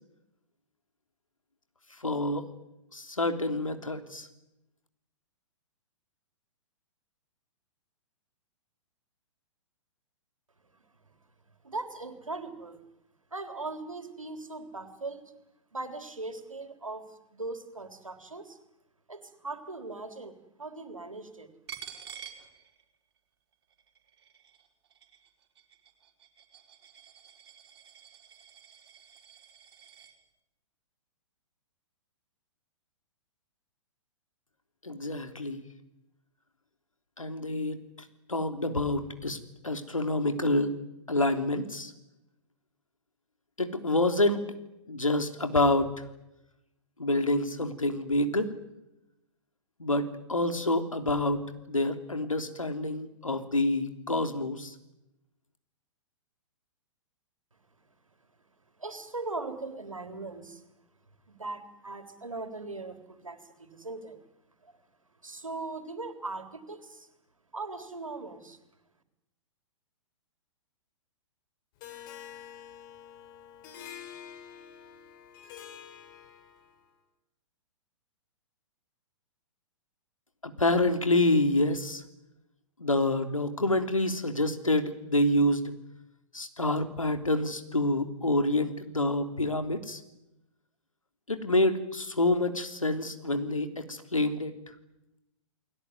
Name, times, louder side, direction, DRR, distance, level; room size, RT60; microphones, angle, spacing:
voice 1, 2.0-2.5 2.9-4.3 34.8-35.6 37.2-39.4 39.6-40.8 41.1-41.9 43.6-44.4 44.9-45.9 47.0-48.5 49.8-54.7 80.4-82.0 82.8-85.7 86.3-90.0 91.3-94.5, left 1 dB, 80° left, 7 dB, 3.4 m, -27 dB
voice 2, 11.6-12.8 13.3-15.3 15.7-18.6 19.1-21.5 58.8-60.6 61.3-64.2 64.6-64.7 65.2-67.1 67.5-68.6, right 3 dB, 80° right, 8 dB, 3.9 m, -39 dB
Coin (dropping), 21.7-23.2 23.5-30.1, right 8 dB, 50° right, 5.2 m, -49 dB
Harp, 71.8-76.8, left 9 dB, 40° left, 4.6 m, -47 dB
30.0 x 20.5 x 9.6 m, 0.92 s
figure-of-eight pair, 110°, 17 cm